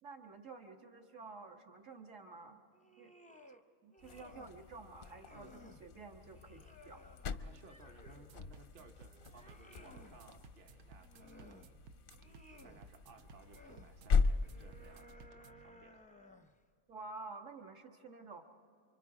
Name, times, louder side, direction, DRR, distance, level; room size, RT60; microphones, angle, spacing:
voice 1, 0.0-2.6 3.0-3.1 3.8-7.0 16.9-18.4, right 3 dB, 60° right, 2 dB, 1.9 m, -51 dB
sound 1, 2.7-3.6 3.9-4.6 5.0-5.8 6.3-8.3 8.8-10.2 10.8-11.7 12.1-12.8 13.3-13.9 14.4-16.6, left 1 dB, 10° left, 0.5 m, -59 dB
sound 2, 4.0-15.1, left 5 dB, 55° left, 0.6 m, -40 dB
voice 2, 7.4-11.9 12.6-16.1, right 3 dB, 45° right, 3 dB, 1.1 m, -60 dB
sound 3, 8.1-15.7, right 4 dB, 90° right, 1.2 m, -59 dB
29.0 x 24.5 x 4.9 m, 2.7 s
omnidirectional pair, 1.5 m